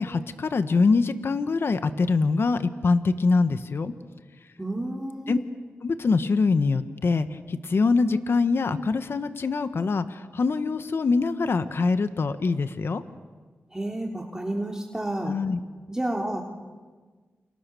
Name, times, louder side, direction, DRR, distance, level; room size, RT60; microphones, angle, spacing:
voice 1, 0.0-3.9 5.3-5.4 5.8-13.0 15.2-15.6, left 4 dB, 60° left, 10 dB, 1.3 m, -24 dB
voice 2, 4.6-5.4 13.7-15.4 15.9-16.4, right 1 dB, 15° right, 1 dB, 3.3 m, -30 dB
29.5 x 29.0 x 7.0 m, 1.4 s
cardioid pair, 60°, 5 cm